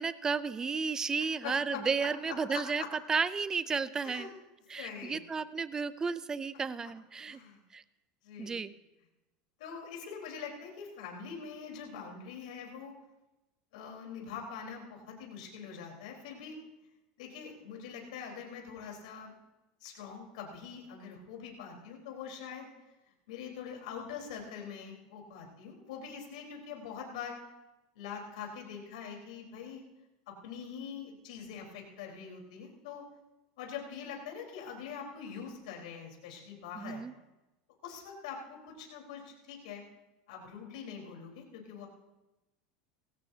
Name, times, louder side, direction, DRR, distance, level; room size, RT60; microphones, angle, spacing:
voice 1, 0.0-2.8 3.1-4.3 4.7-7.4 7.7-7.8 8.4-8.7 36.8-37.1, right 5 dB, 15° right, 15 dB, 0.5 m, -33 dB
voice 2, 1.4-1.8 2.3-2.9 4.0-4.3 4.8-5.2 7.2-7.6 8.2-8.6 9.6-12.9 13.7-16.6 17.2-19.4 19.8-22.7 23.3-27.4 28.0-29.8 30.4-33.0 33.6-37.0 37.8-39.8 40.3-41.9, left 6 dB, 85° left, 0 dB, 4.1 m, -44 dB
20.0 x 16.5 x 2.8 m, 1.0 s
supercardioid pair, 135°, 4 cm